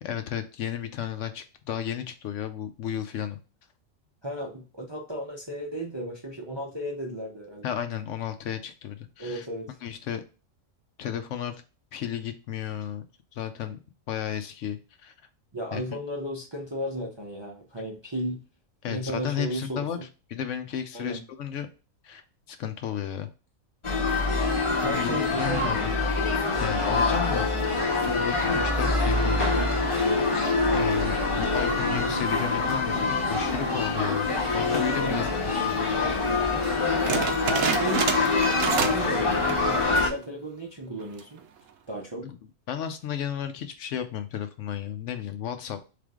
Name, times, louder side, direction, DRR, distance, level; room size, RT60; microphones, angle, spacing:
voice 1, 0.0-3.4 7.6-9.5 9.8-10.2 11.0-11.6 11.9-13.0 13.3-13.8 14.1-15.1 15.7-16.0 18.8-20.0 20.3-21.7 22.0-22.2 22.5-23.3 24.8-26.0 26.6-27.5 28.0-29.6 30.7-35.3 35.7-35.8 42.2-42.4 42.7-45.8, left 9 dB, 70° left, 9 dB, 0.9 m, -33 dB
voice 2, 4.2-7.6 9.2-9.8 15.5-18.4 18.9-20.1 20.9-21.2 24.8-25.9 35.0-35.6 37.1-38.2 38.8-41.4 41.9-42.3, right 1 dB, 30° right, 0 dB, 0.5 m, -34 dB
sound 1, 23.8-40.1, left 3 dB, 25° left, 0.8 m, -25 dB
sound 2, 37.1-39.1 39.4-39.8 40.2-40.3 41.0-41.4, right 7 dB, 75° right, 1.0 m, -29 dB
3.8 x 3.4 x 3.6 m, 0.32 s
omnidirectional pair, 1.4 m